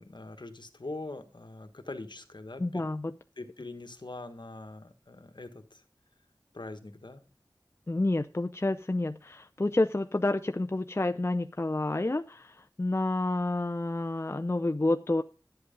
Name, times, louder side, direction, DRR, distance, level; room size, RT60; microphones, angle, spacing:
voice 1, 0.0-2.9 3.4-5.8 6.5-7.2, left 2 dB, 65° left, 8 dB, 1.4 m, -43 dB
voice 2, 2.6-3.1 7.9-15.2, left 2 dB, 30° left, 7 dB, 0.5 m, -29 dB
11.5 x 8.0 x 5.2 m, 0.33 s
wide cardioid pair, 50°, 8 cm